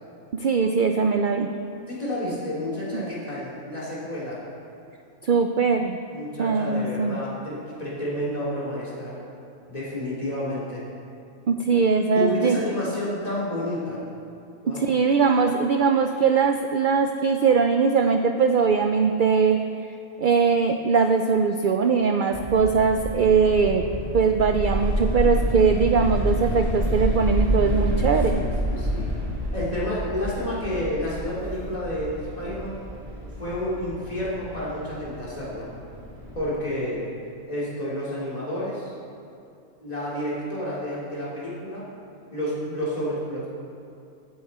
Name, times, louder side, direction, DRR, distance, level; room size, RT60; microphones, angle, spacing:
voice 1, 0.3-1.5 2.9-3.0 5.2-6.0 6.4-7.2 11.5-12.6 14.7-19.6 20.2-23.8 24.1-28.4, right 5 dB, 60° right, 6 dB, 0.5 m, -21 dB
voice 2, 1.9-4.4 6.1-9.2 9.7-10.8 12.1-14.0 14.6-14.8 28.3-29.1 29.5-32.8 33.4-35.7 36.3-37.1 37.5-38.9 39.8-41.9 42.3-43.5, left 1 dB, 30° left, -7 dB, 3.2 m, -30 dB
sound 1, 22.3-36.5, equal, 35° right, 2.8 m, -28 dB
14.0 x 9.6 x 4.3 m, 2.5 s
omnidirectional pair, 1.4 m